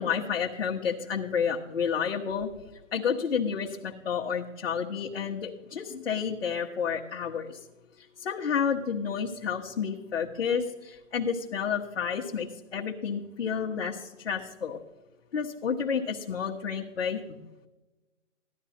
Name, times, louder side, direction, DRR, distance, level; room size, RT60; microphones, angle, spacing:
voice 1, 0.0-2.5 2.9-7.6 8.2-14.8 15.3-17.4, left 7 dB, 55° left, -2 dB, 1.3 m, -30 dB
15.5 x 11.5 x 4.2 m, 1.1 s
hypercardioid pair, 165°, 38 cm